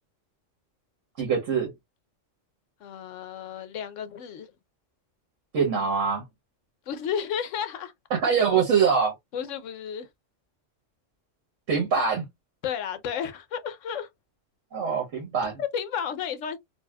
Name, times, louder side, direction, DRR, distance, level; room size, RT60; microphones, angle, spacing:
voice 1, 1.2-1.7 5.5-6.2 8.1-9.1 11.7-12.3 14.7-15.6, right 6 dB, 90° right, 1.4 m, -24 dB
voice 2, 2.8-4.5 6.9-7.9 9.3-10.1 12.6-14.1 15.6-16.6, left 8 dB, 80° left, 1.0 m, -32 dB
4.1 x 2.3 x 2.2 m
omnidirectional pair, 1.3 m